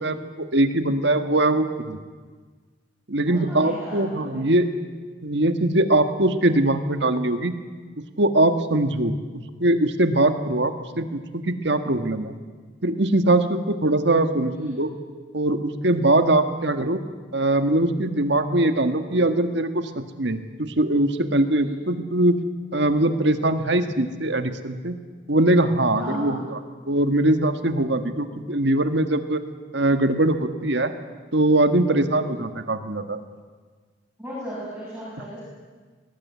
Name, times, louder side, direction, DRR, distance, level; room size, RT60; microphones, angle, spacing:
voice 1, 0.0-2.0 3.1-4.7 5.2-7.5 8.2-9.1 9.6-12.3 12.8-14.9 15.3-17.0 17.3-22.4 22.7-24.9 25.3-26.4 26.9-29.4 29.7-30.9 31.3-33.2, right 1 dB, 60° right, 8 dB, 1.8 m, -21 dB
voice 2, 3.2-4.5 14.5-14.9 21.6-21.7 26.0-26.4 34.2-35.4, equal, 5° right, -10 dB, 7.6 m, -35 dB
22.5 x 19.0 x 9.6 m, 1.5 s
head